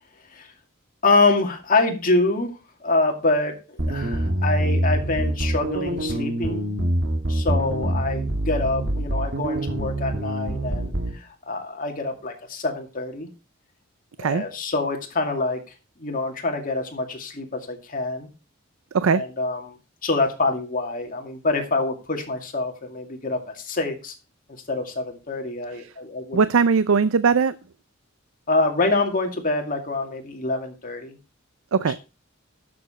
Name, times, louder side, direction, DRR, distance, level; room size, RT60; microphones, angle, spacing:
voice 1, 1.0-2.5 2.8-6.7 7.3-13.3 14.2-15.6 16.0-18.3 19.0-19.8 20.0-24.1 24.5-26.4 28.5-31.2 31.8-32.0, left 3 dB, 40° left, 3 dB, 2.3 m, -25 dB
sound 1, 3.8-11.2, right 1 dB, 55° right, 1.4 m, -25 dB
voice 2, 26.3-27.5 31.7-32.0, right 5 dB, 80° right, 15 dB, 0.5 m, -19 dB
11.5 x 7.0 x 4.3 m, 0.31 s
head